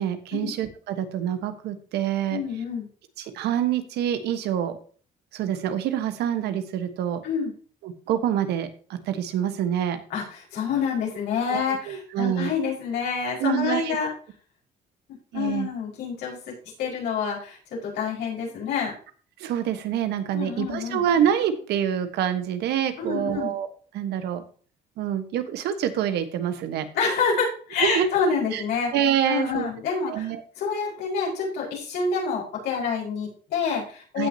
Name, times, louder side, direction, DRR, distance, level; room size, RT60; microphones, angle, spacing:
voice 1, 0.0-2.4 3.2-4.8 5.3-7.2 7.8-10.0 11.5-12.5 13.4-14.0 15.3-15.7 19.4-23.7 23.9-24.4 25.0-26.9 27.8-28.1 28.5-28.6 28.9-29.7 30.1-30.4 34.2-34.3, right 10 dB, 75° right, 9 dB, 1.4 m, -26 dB
voice 2, 2.3-2.9 7.2-7.5 10.1-14.1 15.3-18.9 20.3-21.0 23.0-23.5 26.9-28.9 29.3-30.3 30.6-34.3, left 5 dB, 80° left, -4 dB, 5.2 m, -27 dB
15.5 x 6.1 x 2.8 m, 0.42 s
cardioid pair, 110°, 17 cm